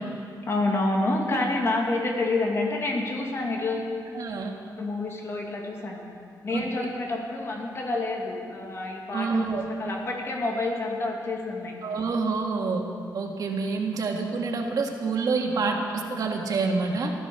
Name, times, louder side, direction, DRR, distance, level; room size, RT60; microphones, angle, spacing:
voice 1, 0.5-3.9 4.8-6.0 6.4-11.8, left 2 dB, 40° left, 0 dB, 2.5 m, -28 dB
voice 2, 4.1-4.5 6.5-6.7 9.1-9.7 11.8-12.8 13.1-17.1, right 4 dB, 60° right, 1 dB, 2.0 m, -27 dB
15.0 x 13.5 x 6.9 m, 2.4 s
wide cardioid pair, 160°, 7 cm